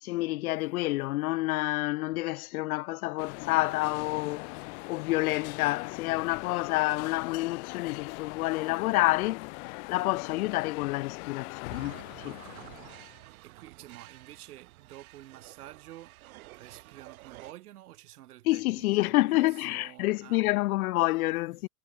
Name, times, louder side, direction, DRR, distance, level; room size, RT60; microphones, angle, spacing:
voice 1, 0.0-4.6 4.9-12.4 18.5-21.7, left 19 dB, 75° left, 0.8 m, -28 dB
sound 1, 3.2-13.2, left 33 dB, 50° left, 1.4 m, -41 dB
sound 2, 11.7-17.5, right 18 dB, 70° right, 7.1 m, -50 dB
voice 2, 13.4-16.1 16.6-20.4, right 14 dB, 85° right, 6.0 m, -49 dB
supercardioid pair, 145°, 44 cm